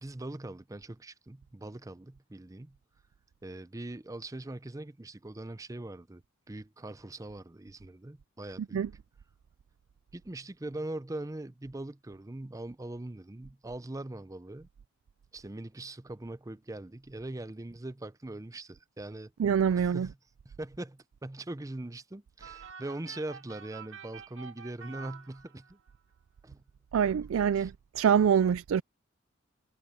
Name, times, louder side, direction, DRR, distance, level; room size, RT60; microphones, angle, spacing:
voice 1, 0.0-2.8 3.4-6.2 6.5-8.9 10.1-14.7 15.3-19.3 19.8-20.1 20.4-25.8 26.4-26.6 27.6-27.7, right 2 dB, 15° right, 0.5 m, -41 dB
voice 2, 19.4-20.1 26.9-28.8, right 7 dB, 80° right, 0.3 m, -25 dB
sound 1, 22.4-25.9, right 6 dB, 65° right, 1.9 m, -48 dB
head